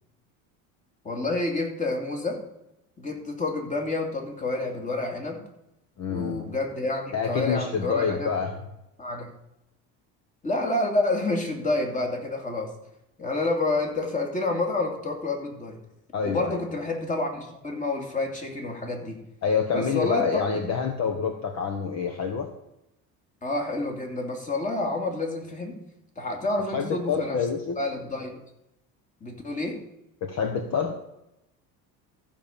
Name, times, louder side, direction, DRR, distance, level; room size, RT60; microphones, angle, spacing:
voice 1, 1.0-2.4 3.0-5.4 6.1-8.3 9.0-9.3 10.4-12.7 13.2-15.8 16.2-19.2 19.7-20.5 23.4-25.8 26.2-27.5 27.8-28.4 29.2-29.8, left 2 dB, 20° left, 2 dB, 2.6 m, -29 dB
voice 2, 6.0-6.5 7.1-8.6 16.1-16.6 19.4-22.5 26.7-27.8 30.2-30.9, left 6 dB, 45° left, 5 dB, 1.3 m, -27 dB
14.0 x 5.3 x 7.2 m, 0.85 s
cardioid pair, 130°, 36 cm